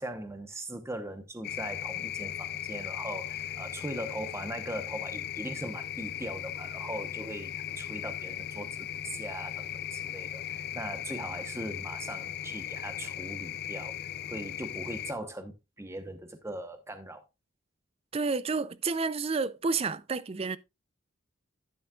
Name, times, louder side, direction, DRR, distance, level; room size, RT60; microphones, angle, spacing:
voice 1, 0.0-14.0 14.3-17.2, right 1 dB, 15° right, 0.9 m, -40 dB
sound 1, 1.4-15.1, left 11 dB, 50° left, 0.4 m, -38 dB
voice 2, 18.1-20.6, right 4 dB, 30° right, 0.4 m, -30 dB
11.0 x 9.4 x 2.3 m
head